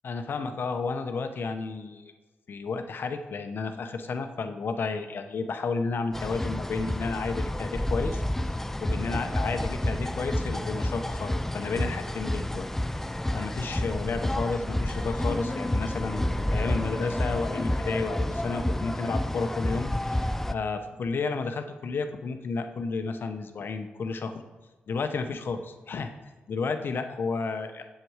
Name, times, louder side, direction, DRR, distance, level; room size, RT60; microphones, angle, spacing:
voice 1, 0.0-2.1 2.5-12.7 13.3-24.4 24.9-26.1 26.5-27.8, left 4 dB, 60° left, 7 dB, 0.8 m, -32 dB
sound 1, 6.1-20.5, left 1 dB, 10° left, 0.4 m, -30 dB
7.7 x 7.6 x 4.8 m, 1.3 s
cardioid pair, 70°, 4 cm